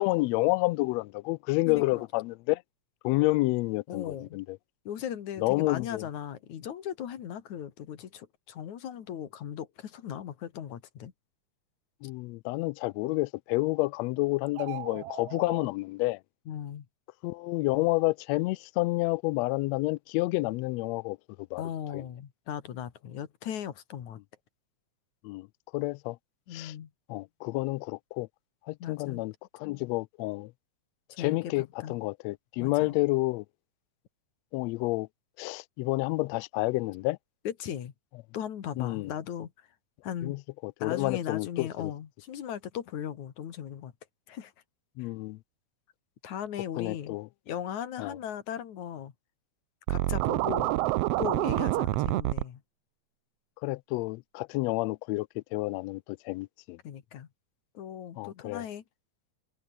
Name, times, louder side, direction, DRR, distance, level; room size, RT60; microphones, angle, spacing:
voice 1, 0.0-2.6 3.0-4.6 5.4-6.1 12.0-16.2 17.2-21.6 21.9-22.0 25.2-25.5 25.7-26.2 26.5-26.7 27.1-28.3 28.7-30.5 31.2-33.4 34.5-35.1 35.4-37.2 38.8-39.1 40.2-41.9 45.0-45.4 46.8-47.3 48.0-48.2 53.6-56.8 58.2-58.6, left 22 dB, 85° left, 1.5 m, -29 dB
voice 2, 1.7-2.0 3.9-4.4 4.8-11.1 16.5-16.9 21.6-24.2 26.5-26.9 28.8-29.2 29.6-29.8 31.1-31.5 31.8-32.0 32.6-33.0 37.4-37.9 38.3-39.7 40.0-40.4 40.8-43.9 44.3-44.5 45.0-45.1 46.2-47.2 47.5-49.1 49.9-50.7 51.2-52.6 56.8-57.3 57.7-58.8, left 9 dB, 70° left, 3.2 m, -38 dB
sound 1, 14.5-15.7, right 14 dB, 70° right, 1.6 m, -40 dB
Scratching (performance technique), 49.9-52.4, right 17 dB, 90° right, 1.4 m, -27 dB
omnidirectional pair, 3.6 m